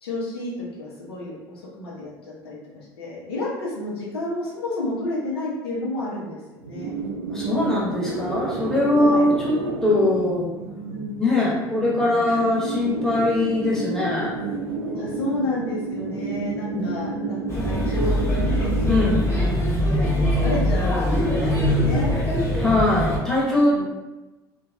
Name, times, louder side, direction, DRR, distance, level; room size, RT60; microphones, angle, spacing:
voice 1, 0.0-6.9 8.9-9.3 10.9-11.1 12.3-12.4 14.9-18.7 19.0-19.3 19.8-22.1 23.7-23.8, left 2 dB, 80° left, -5 dB, 0.6 m, -31 dB
sound 1, 6.6-19.2, right 4 dB, 80° right, 0.4 m, -30 dB
voice 2, 7.3-9.5 9.8-10.5 11.2-14.3 16.7-16.9 18.8-19.3 22.5-23.8, left 2 dB, 5° left, -7 dB, 1.1 m, -21 dB
Male speech man speaking / Child speech kid speaking / Chatter, 17.5-23.2, equal, 20° left, 0.8 m, -22 dB
2.8 x 2.2 x 2.4 m, 1.1 s
figure-of-eight pair, 65°, 13 cm